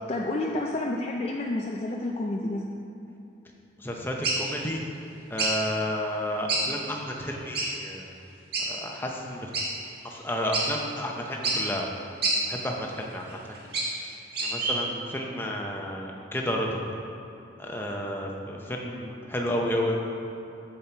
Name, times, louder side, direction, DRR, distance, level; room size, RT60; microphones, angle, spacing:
voice 1, 0.1-2.6, left 2 dB, 30° left, -1 dB, 0.4 m, -29 dB
voice 2, 3.8-4.9 5.3-8.1 8.6-9.5 10.0-11.9 12.5-13.6 13.9-14.1 14.4-16.8 17.6-20.0, equal, 10° left, 0 dB, 0.8 m, -31 dB
sound 1, 4.2-4.5 5.4-5.5 6.5-6.6 7.0-7.1 7.5-7.7 8.5-8.7 9.5-9.7 10.1-10.2 10.5-10.7 11.4-11.6 12.2-12.4 13.3-14.0 14.3-14.7, right 3 dB, 50° right, 1.5 m, -26 dB
7.3 x 7.3 x 4.5 m, 2.9 s
head